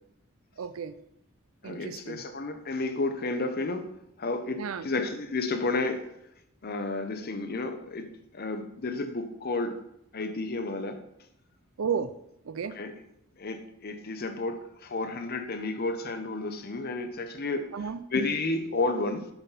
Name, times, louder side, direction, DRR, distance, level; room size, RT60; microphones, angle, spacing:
voice 1, 0.6-1.0 1.6-2.2 4.6-4.9 11.8-12.1 12.4-12.8 17.7-18.0, right 6 dB, 70° right, 14 dB, 0.4 m, -33 dB
voice 2, 1.6-3.9 4.2-6.1 6.6-9.8 10.1-11.0 12.7-12.9 13.4-17.7 18.1-19.3, left 3 dB, 45° left, 8 dB, 0.7 m, -31 dB
6.8 x 4.2 x 5.6 m, 0.79 s
head